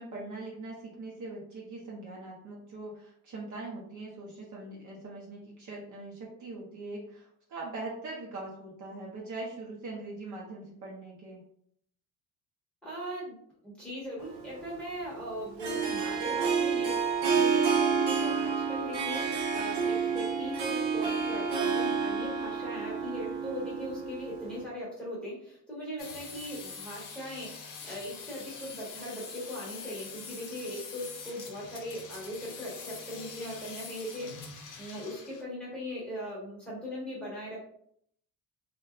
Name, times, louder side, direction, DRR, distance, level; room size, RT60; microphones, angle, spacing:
voice 1, 0.0-11.4, right 2 dB, 45° right, -3 dB, 0.6 m, -42 dB
voice 2, 12.8-13.4 13.6-17.0 17.3-27.6 27.8-34.5 34.8-37.6, equal, ahead, -7 dB, 1.0 m, -39 dB
Harp, 14.2-24.6, right 6 dB, 75° right, 0.8 m, -29 dB
sound 1, 26.0-35.4, left 5 dB, 50° left, 0.6 m, -45 dB
2.6 x 2.2 x 2.2 m, 0.67 s
cardioid pair, 145°, 41 cm